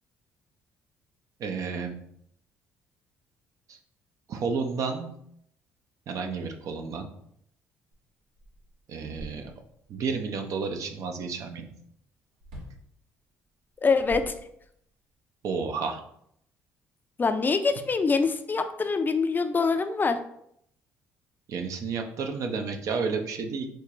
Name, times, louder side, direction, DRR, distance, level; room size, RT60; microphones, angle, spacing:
voice 1, 1.4-2.0 3.7-3.8 4.3-5.1 6.1-7.1 8.9-9.5 9.9-11.7 15.4-16.0 21.5-23.7, right 5 dB, 60° right, 5 dB, 0.6 m, -31 dB
sound 1, 7.9-8.0 8.3-9.8 12.4-12.9 13.7-14.9, right 1 dB, 90° right, 1.3 m, -44 dB
voice 2, 13.8-14.3 17.2-20.2, left 4 dB, 30° left, 8 dB, 0.4 m, -24 dB
4.3 x 2.4 x 3.0 m, 0.71 s
supercardioid pair, 60°, 6 cm